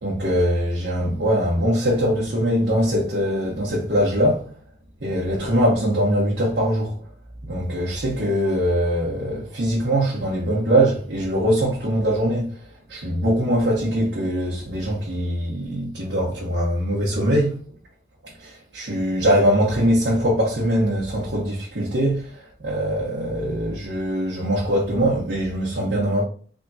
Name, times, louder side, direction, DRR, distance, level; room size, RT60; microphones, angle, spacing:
voice 1, 0.0-4.5 5.0-7.0 7.4-17.6 18.2-26.2, equal, 75° right, 1.1 m, -22 dB
4.1 x 3.6 x 2.3 m
head